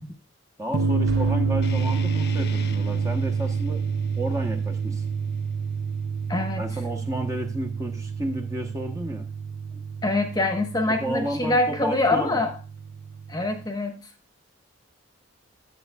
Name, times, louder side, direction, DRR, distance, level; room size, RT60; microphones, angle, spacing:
voice 1, 0.6-3.8 4.2-5.0 6.6-9.3 10.9-12.4, equal, 15° right, 4 dB, 0.9 m, -32 dB
sound 1, 0.7-13.7, right 5 dB, 50° right, 0.5 m, -28 dB
Boom, 1.0-2.8 3.7-3.9, left 1 dB, 85° right, 4.0 m, -43 dB
sound 2, 1.6-6.7, left 4 dB, 50° left, 0.8 m, -43 dB
voice 2, 6.3-6.6 10.0-12.6 13.3-13.9, left 2 dB, 20° left, 5 dB, 1.0 m, -24 dB
11.0 x 7.7 x 2.3 m, 0.34 s
head